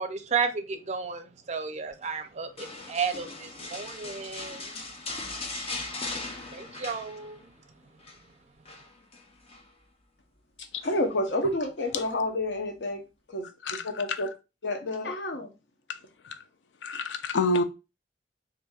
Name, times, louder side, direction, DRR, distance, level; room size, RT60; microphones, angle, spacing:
voice 1, 0.0-4.9 6.5-7.4, right 6 dB, 40° right, 0.5 m, -33 dB
sound 1, 2.6-7.6 7.8-8.2 8.7-9.7 10.8-11.3 11.8-11.9, left 3 dB, 35° left, 0.6 m, -39 dB
voice 2, 10.8-14.3 14.6-15.5, left 1 dB, 70° left, 0.8 m, -30 dB
voice 3, 16.8-17.6, left 2 dB, 90° left, 0.4 m, -28 dB
4.1 x 2.6 x 2.3 m
head